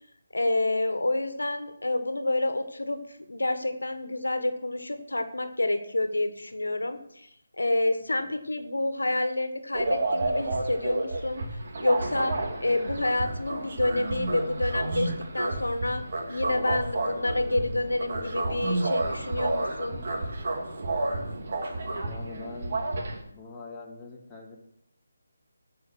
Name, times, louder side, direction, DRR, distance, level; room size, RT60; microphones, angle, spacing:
voice 1, 0.3-3.0 3.3-7.3 7.6-11.4 11.8-12.3 12.6-16.0 16.3-20.0, left 2 dB, 90° left, 9 dB, 1.3 m, -28 dB
sound 1, 9.7-23.2, right 2 dB, 50° right, 2.4 m, -31 dB
voice 2, 22.0-22.8 23.3-24.6, left 4 dB, 10° left, -5 dB, 2.2 m, -43 dB
14.5 x 5.7 x 6.1 m, 0.72 s
figure-of-eight pair, 160°, 0 cm